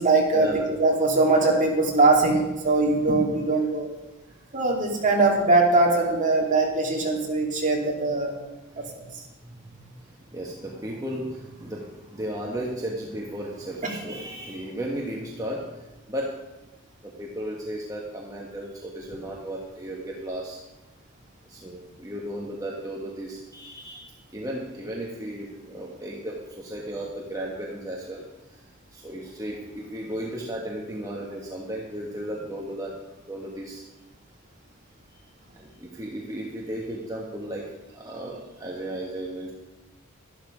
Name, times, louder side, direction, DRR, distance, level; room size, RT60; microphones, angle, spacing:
voice 1, 0.0-3.9 4.5-8.4 8.8-8.9 9.1-9.2, right 3 dB, 35° right, 0 dB, 2.6 m, -21 dB
voice 2, 8.7-9.0 9.4-16.3 17.0-20.6 21.5-28.6 28.9-32.9 33.3-33.8 35.1-35.2 35.5-39.5, right 1 dB, 15° right, -3 dB, 1.5 m, -35 dB
12.0 x 12.0 x 5.1 m, 1.1 s
head